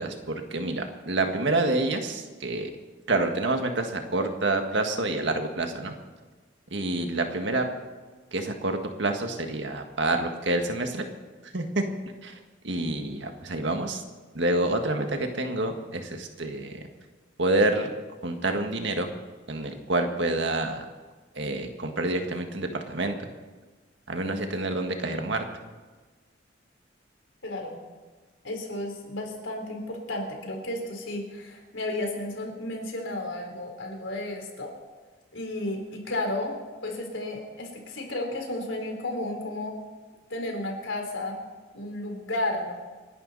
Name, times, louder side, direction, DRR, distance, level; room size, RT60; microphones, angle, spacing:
voice 1, 0.0-2.7 3.1-5.9 6.7-7.7 8.3-11.0 11.5-11.8 12.2-12.3 12.6-14.0 14.4-16.8 17.4-17.9 18.2-19.1 19.5-20.8 21.4-23.2 24.1-25.4, right 2 dB, 70° right, 4 dB, 1.8 m, -27 dB
voice 2, 27.4-27.8 28.4-34.7 35.3-36.5 36.8-39.8 40.3-41.4 41.7-42.7, left 1 dB, 85° left, 2 dB, 3.7 m, -33 dB
29.0 x 11.5 x 4.2 m, 1.3 s
head